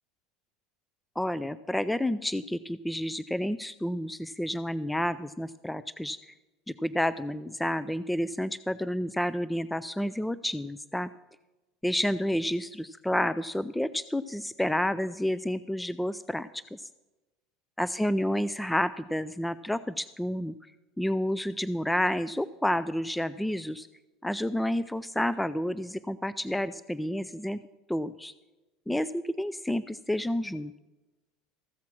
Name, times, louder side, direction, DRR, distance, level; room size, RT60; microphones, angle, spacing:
voice 1, 1.2-6.3 6.8-11.1 11.8-16.8 17.8-20.5 21.0-23.9 24.2-27.6 27.9-28.3 28.9-30.8, left 1 dB, 5° left, 15 dB, 0.3 m, -30 dB
14.5 x 7.5 x 5.9 m, 1.1 s
supercardioid pair, 120°, 0 cm